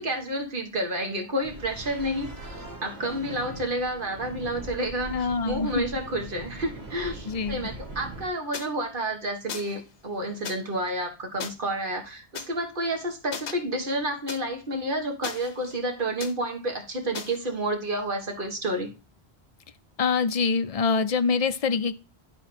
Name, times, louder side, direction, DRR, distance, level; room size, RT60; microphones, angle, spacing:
voice 1, 0.0-18.9, right 1 dB, 50° right, 1.8 m, -30 dB
sound 1, 1.4-8.3, right 2 dB, 70° right, 2.1 m, -41 dB
voice 2, 5.1-5.8 7.3-7.6 20.0-21.9, left 5 dB, 45° left, 0.6 m, -25 dB
sound 2, 8.5-8.7 9.5-9.8 10.4-10.6 11.4-11.5 12.3-12.5 13.3-13.5 14.3-14.4 15.2-15.8 16.2-16.3 17.1-17.4, left 6 dB, 80° left, 1.2 m, -36 dB
11.5 x 4.0 x 4.3 m
omnidirectional pair, 1.1 m